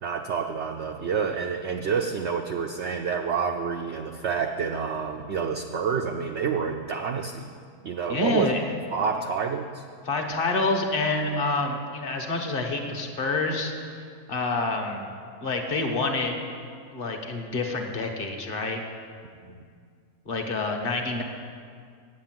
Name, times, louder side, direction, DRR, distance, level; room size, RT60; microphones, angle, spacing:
voice 1, 0.0-7.5 7.8-8.5 8.9-9.8 11.3-11.4 19.4-19.5, right 6 dB, 70° right, 4 dB, 0.6 m, -28 dB
voice 2, 8.1-8.6 10.0-13.7 14.3-15.1 15.4-16.4 16.9-18.8 20.2-21.2, left 3 dB, 40° left, 3 dB, 1.1 m, -27 dB
8.7 x 8.6 x 7.5 m, 2.1 s
omnidirectional pair, 1.7 m